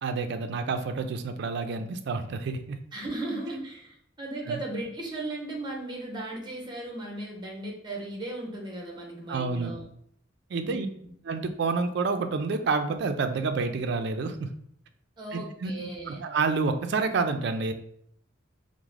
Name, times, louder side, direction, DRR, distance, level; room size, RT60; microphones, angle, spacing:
voice 1, 0.0-2.8 4.5-4.6 9.3-9.7 10.5-10.9 11.3-14.5 15.3-17.7, right 4 dB, 60° right, 8 dB, 0.3 m, -29 dB
voice 2, 2.9-9.8 10.6-10.9 15.2-16.3, right 2 dB, 25° right, -1 dB, 0.7 m, -36 dB
3.5 x 2.0 x 3.2 m, 0.68 s
head